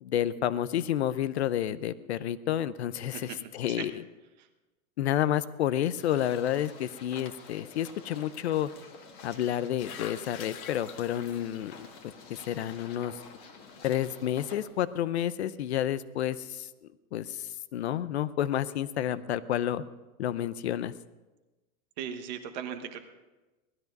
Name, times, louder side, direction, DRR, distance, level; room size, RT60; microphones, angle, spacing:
voice 1, 0.0-4.0 5.0-8.7 9.2-11.9 12.3-13.2 13.8-16.7 17.1-19.8 20.2-20.9, left 11 dB, 50° left, 16 dB, 0.7 m, -30 dB
voice 2, 3.1-3.4 3.7-3.9 4.4-4.5 22.0-23.0, right 8 dB, 30° right, 7 dB, 1.2 m, -38 dB
sound 1, 5.9-14.7, left 4 dB, 25° left, 1.6 m, -50 dB
sound 2, 9.3-15.0, left 8 dB, 75° left, 1.6 m, -49 dB
18.5 x 13.0 x 5.3 m, 1.1 s
supercardioid pair, 175°, 43 cm